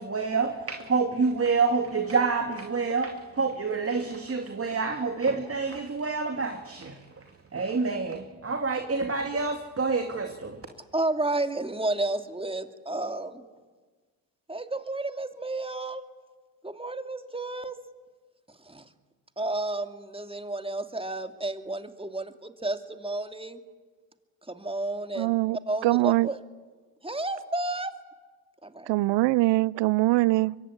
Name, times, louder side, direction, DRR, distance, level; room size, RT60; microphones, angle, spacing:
voice 1, 0.0-7.2 7.5-10.6, right 4 dB, 30° right, 2.5 m, -28 dB
voice 2, 10.9-13.4 14.5-16.0 16.6-17.8 18.5-18.9 19.4-23.6 24.5-25.4 25.7-26.4 27.0-27.9 28.6-28.9, right 2 dB, 10° right, 2.6 m, -31 dB
voice 3, 25.2-25.6 25.8-26.3 28.9-30.6, right 19 dB, 65° right, 0.7 m, -22 dB
24.0 x 23.0 x 9.9 m
hypercardioid pair, 60°, 46 cm